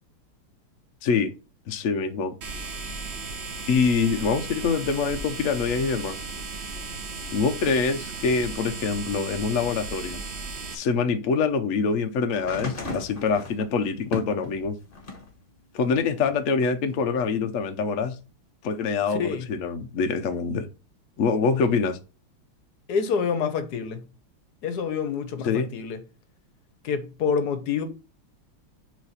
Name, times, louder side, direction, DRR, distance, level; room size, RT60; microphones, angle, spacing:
voice 1, 1.0-1.3 1.7-2.3 3.7-6.2 7.3-10.2 10.7-14.8 15.7-18.2 18.6-20.7 21.2-22.0 25.4-25.7, left 5 dB, 75° left, 0.7 m, -25 dB
sound 1, 2.4-10.7, right 3 dB, 45° right, 0.9 m, -36 dB
sound 2, 12.3-15.3 15.8-17.0 18.0-18.1, left 2 dB, 35° left, 1.0 m, -37 dB
voice 2, 19.1-19.5 22.9-24.0 24.6-26.0 26.8-27.8, left 6 dB, 60° left, 1.2 m, -27 dB
6.1 x 3.3 x 5.6 m
omnidirectional pair, 2.3 m